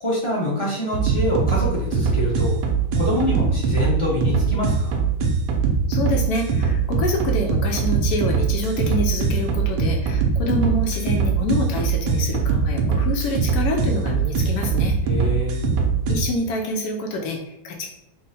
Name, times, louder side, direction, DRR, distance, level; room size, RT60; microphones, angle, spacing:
voice 1, 0.0-2.5 3.0-5.1 15.0-15.6, left 1 dB, 40° left, -5 dB, 0.4 m, -25 dB
sound 1, 0.9-16.2, right 6 dB, 80° right, 1.2 m, -21 dB
voice 2, 5.9-14.9 16.1-17.9, left 2 dB, 75° left, 2 dB, 1.0 m, -27 dB
3.6 x 2.1 x 4.0 m, 0.80 s
omnidirectional pair, 1.8 m